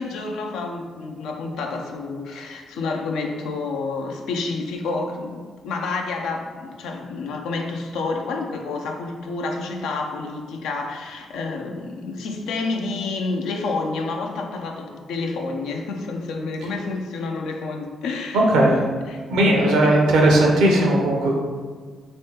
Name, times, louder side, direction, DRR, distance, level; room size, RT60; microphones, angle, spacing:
voice 1, 0.0-18.4 19.1-19.2 19.8-20.3, left 3 dB, 75° left, 2 dB, 0.4 m, -29 dB
voice 2, 18.3-18.8 19.3-21.3, right 1 dB, 80° right, 0 dB, 0.6 m, -17 dB
3.3 x 3.2 x 2.9 m, 1.5 s
hypercardioid pair, 45°, 0 cm